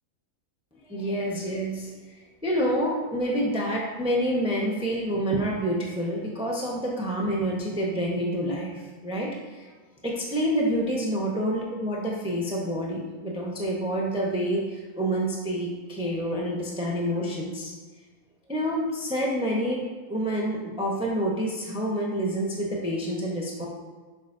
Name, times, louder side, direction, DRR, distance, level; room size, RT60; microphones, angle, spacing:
voice 1, 0.9-1.9 2.4-9.6 10.0-17.7 18.5-19.8 20.1-23.7, equal, 5° right, -3 dB, 0.8 m, -28 dB
11.0 x 5.1 x 2.7 m, 1.4 s
omnidirectional pair, 1.5 m